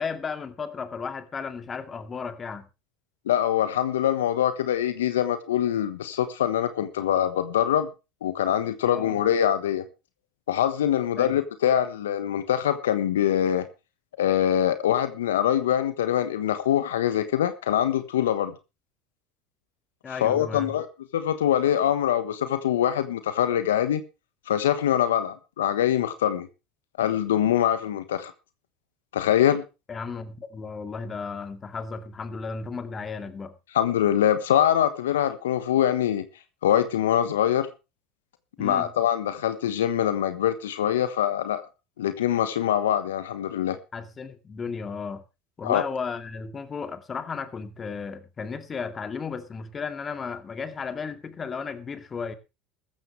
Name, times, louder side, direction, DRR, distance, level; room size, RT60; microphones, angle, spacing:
voice 1, 0.0-2.7 8.9-9.2 11.2-11.4 20.0-20.7 29.9-33.5 38.6-38.9 43.9-45.2 45.6-52.3, left 5 dB, 30° left, 2.3 m, -34 dB
voice 2, 3.3-7.9 8.2-9.8 10.5-13.6 14.2-18.5 20.1-20.9 21.1-24.0 24.5-26.5 27.0-28.3 29.1-29.6 33.7-36.2 36.6-37.7 38.6-41.6 42.0-43.8 45.6-45.8, left 10 dB, 85° left, 1.2 m, -24 dB
15.0 x 13.5 x 3.3 m
hypercardioid pair, 80°, 0 cm